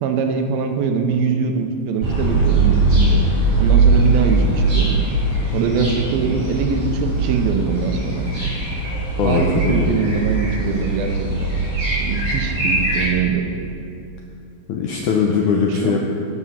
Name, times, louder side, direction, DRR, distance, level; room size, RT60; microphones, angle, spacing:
voice 1, 0.0-5.0 5.5-8.3 9.2-11.5 12.0-13.5 15.7-16.0, right 5 dB, 80° right, 5 dB, 2.5 m, -22 dB
sound 1, 2.0-13.1, right 3 dB, 40° right, 3.2 m, -20 dB
voice 2, 9.2-9.9 14.7-16.0, left 6 dB, 80° left, -1 dB, 1.8 m, -20 dB
12.5 x 7.3 x 5.7 m, 2.7 s
omnidirectional pair, 4.4 m